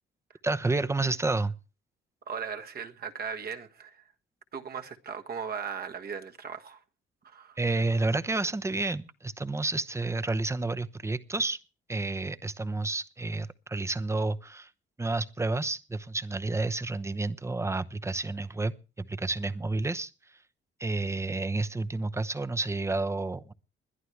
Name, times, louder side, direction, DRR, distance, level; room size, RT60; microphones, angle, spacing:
voice 1, 0.4-1.5 7.6-11.6 11.9-14.7 15.0-20.1 20.8-23.5, right 2 dB, 15° right, 0.8 m, -30 dB
voice 2, 2.3-4.1 4.5-6.8 7.2-7.6, right 6 dB, 50° right, 1.5 m, -38 dB
21.0 x 11.0 x 3.4 m
cardioid pair, 90°, 20 cm